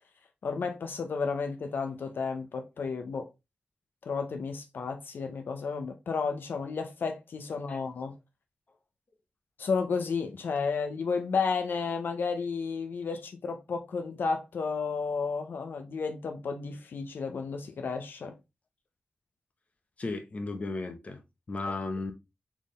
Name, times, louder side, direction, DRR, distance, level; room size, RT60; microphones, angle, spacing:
voice 1, 0.4-3.3 4.0-8.2 9.6-18.4, left 5 dB, 85° left, 0.6 m, -32 dB
voice 2, 20.0-21.2 21.5-22.1, left 3 dB, 40° left, 0.9 m, -34 dB
4.3 x 3.6 x 3.1 m
wide cardioid pair, 140°, 3 cm